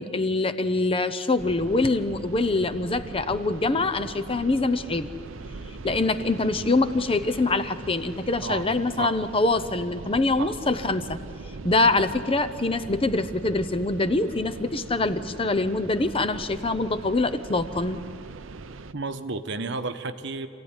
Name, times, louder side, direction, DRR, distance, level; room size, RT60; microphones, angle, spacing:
voice 1, 0.0-5.1 5.8-11.2 11.6-18.0, left 2 dB, 30° left, 11 dB, 0.8 m, -24 dB
sound 1, 1.4-18.9, right 3 dB, 80° right, 0.7 m, -41 dB
Wind, 3.7-8.4, right 1 dB, 35° right, 1.2 m, -47 dB
voice 2, 18.9-20.5, right 3 dB, 65° right, 9 dB, 1.0 m, -31 dB
26.0 x 16.0 x 9.8 m, 2.6 s
head